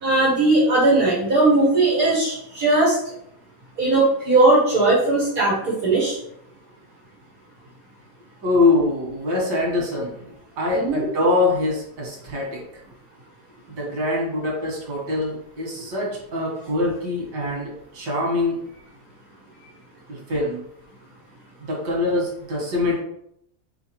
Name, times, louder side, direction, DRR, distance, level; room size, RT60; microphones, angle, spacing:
voice 1, 0.0-3.0 3.8-6.2 10.7-11.1, right 2 dB, 60° right, -8 dB, 2.0 m, -18 dB
voice 2, 8.4-10.2 10.6-12.6 13.7-18.6 20.1-20.6 21.7-23.0, left 2 dB, 85° right, -3 dB, 1.8 m, -24 dB
4.2 x 3.8 x 2.9 m, 0.73 s
omnidirectional pair, 1.8 m